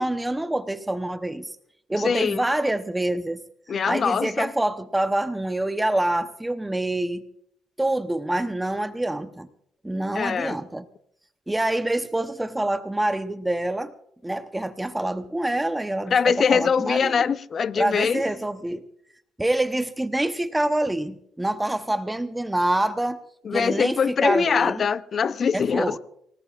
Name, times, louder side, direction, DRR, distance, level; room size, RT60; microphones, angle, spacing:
voice 1, 0.0-1.6 1.9-3.4 3.7-7.2 7.8-9.5 9.8-10.9 11.5-13.9 14.2-17.1 17.8-18.8 19.4-23.2 23.5-24.8 25.5-26.0, right 1 dB, 10° right, 0.8 m, -26 dB
voice 2, 2.0-2.4 3.7-4.5 10.1-10.6 16.1-18.2 23.4-26.0, left 6 dB, 50° left, 0.6 m, -23 dB
27.0 x 18.5 x 2.4 m
cardioid pair, 90°, 0 cm